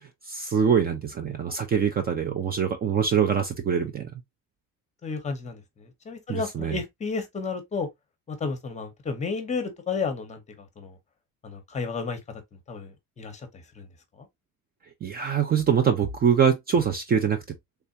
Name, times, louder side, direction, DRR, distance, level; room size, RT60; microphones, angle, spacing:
voice 1, 0.3-4.1 6.3-6.8 15.0-17.4, right 7 dB, 30° right, 0.4 m, -24 dB
voice 2, 5.0-7.9 8.3-10.4 10.8-11.0 11.4-12.4 12.7-13.5 13.8-13.9 14.2-14.3, left 4 dB, 20° left, 0.8 m, -32 dB
3.4 x 3.4 x 2.6 m
cardioid pair, 170°, 31 cm